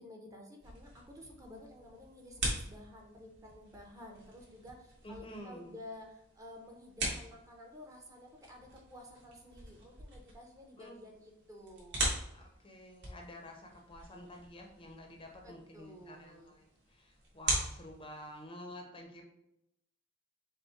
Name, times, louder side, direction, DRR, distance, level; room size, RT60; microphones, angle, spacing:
voice 1, 0.0-12.1 15.4-16.5, left 1 dB, 15° right, 0 dB, 0.7 m, -52 dB
sound 1, 0.6-18.4, right 2 dB, 55° right, 1.6 m, -42 dB
voice 2, 5.0-5.7 10.8-11.0 12.3-19.2, left 1 dB, 25° left, 2 dB, 0.6 m, -50 dB
5.2 x 2.1 x 4.5 m, 0.82 s
head